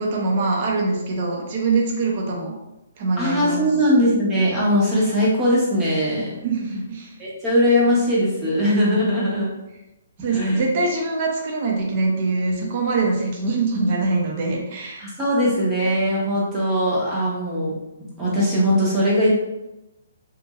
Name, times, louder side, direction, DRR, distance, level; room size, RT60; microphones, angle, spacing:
voice 1, 0.0-2.6 3.0-3.7 6.4-7.1 10.2-15.1, right 3 dB, 35° right, -1 dB, 0.6 m, -23 dB
voice 2, 3.2-6.4 7.2-9.5 10.3-10.6 15.0-17.8 18.2-19.4, equal, 15° right, -6 dB, 0.8 m, -20 dB
2.9 x 2.6 x 2.3 m, 0.97 s
hypercardioid pair, 160°, 0 cm